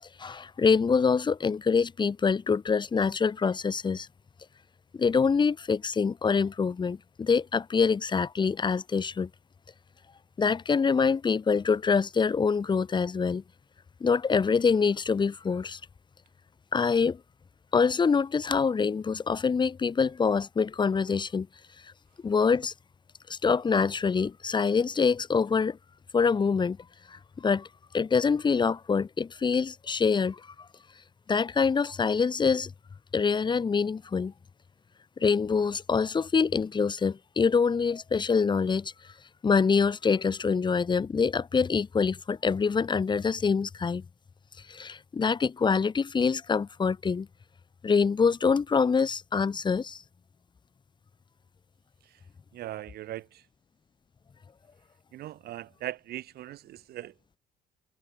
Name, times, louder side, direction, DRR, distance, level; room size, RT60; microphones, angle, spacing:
voice 1, 0.2-4.1 4.9-9.3 10.4-13.4 14.0-15.8 16.7-17.2 17.7-21.5 22.2-22.7 23.3-25.8 26.1-26.8 27.1-27.7 27.9-30.4 31.3-32.7 33.1-34.3 35.2-38.9 39.4-44.0 44.7-47.3 47.8-50.0, left 5 dB, 25° left, 1.2 m, -25 dB
voice 2, 52.5-53.5 55.1-57.1, right 14 dB, 70° right, 3.5 m, -40 dB
cardioid pair, 110°, 17 cm